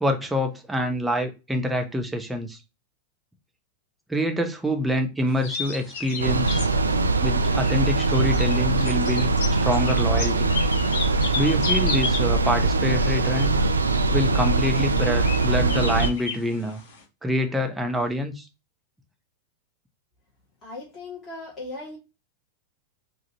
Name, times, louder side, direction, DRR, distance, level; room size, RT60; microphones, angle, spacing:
voice 1, 0.0-2.6 4.1-6.6 7.2-9.3 9.6-10.5 11.3-13.6 14.1-16.8 17.2-18.4, equal, 5° right, 0.8 m, -26 dB
sound 1, 5.3-17.0, left 5 dB, 50° left, 1.3 m, -35 dB
sound 2, 6.2-16.1, right 3 dB, 75° right, 0.4 m, -22 dB
voice 2, 20.6-22.0, left 2 dB, 25° left, 2.4 m, -37 dB
5.1 x 2.8 x 2.8 m
figure-of-eight pair, 90°, 0 cm